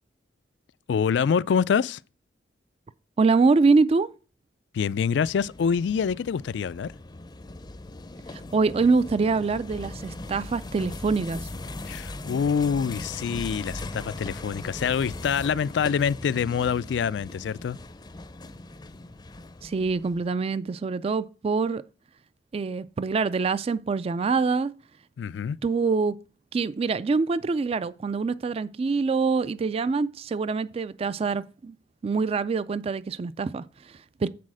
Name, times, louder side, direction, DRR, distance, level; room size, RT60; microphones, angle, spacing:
voice 1, 0.9-2.0 4.7-6.9 11.8-17.8 25.2-25.6, left 6 dB, 75° left, 0.3 m, -26 dB
voice 2, 3.2-4.1 8.3-11.5 19.6-21.8 22.5-24.7 25.6-26.2 26.5-31.7 32.0-34.3, right 4 dB, 35° right, 0.3 m, -25 dB
sound 1, 5.2-20.3, left 2 dB, 25° left, 0.5 m, -39 dB
8.5 x 4.1 x 6.2 m
head